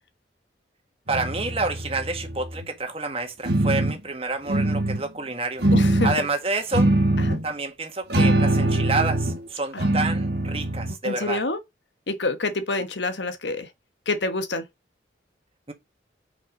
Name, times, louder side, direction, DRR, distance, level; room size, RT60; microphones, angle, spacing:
voice 1, 1.1-5.6 6.0-6.9 7.4-11.4 15.7-15.8, right 3 dB, 30° right, 1.6 m, -28 dB
sound 1, 1.1-2.7 3.4-4.0 4.5-5.0 5.6-6.2 6.7-7.4 8.1-9.4 9.8-10.9, right 1 dB, 65° right, 1.8 m, -22 dB
voice 2, 5.7-6.1 7.2-7.4 9.7-9.9 11.0-11.6 12.1-13.7 14.1-14.6, left 2 dB, 75° left, 1.2 m, -27 dB
5.9 x 5.4 x 5.2 m
head